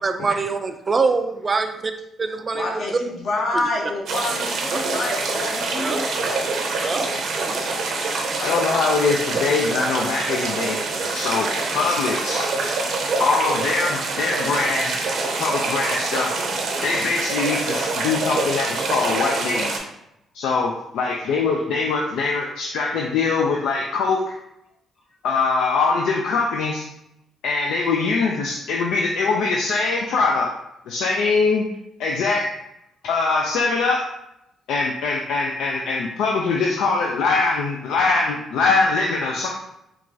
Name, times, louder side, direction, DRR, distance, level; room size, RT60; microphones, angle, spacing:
voice 1, 0.0-1.9 2.2-2.8 4.7-4.8 5.8-6.0 6.8-7.0 7.4-7.6, right 4 dB, 35° right, 7 dB, 0.3 m, -24 dB
voice 2, 2.5-6.0 7.5-7.6 8.4-8.7, left 2 dB, 60° left, -1 dB, 1.0 m, -28 dB
sound 1, 4.1-19.8, right 3 dB, 70° right, 0.6 m, -25 dB
voice 3, 8.4-10.8 11.1-12.5 13.2-14.9 15.4-16.3 16.8-19.8 20.3-24.4 25.2-26.9 27.4-30.5 30.9-31.7 32.0-32.5 33.0-34.0 34.7-39.5, left 4 dB, 85° left, 0 dB, 0.3 m, -22 dB
4.6 x 2.3 x 2.6 m, 0.83 s
cardioid pair, 90°, 0 cm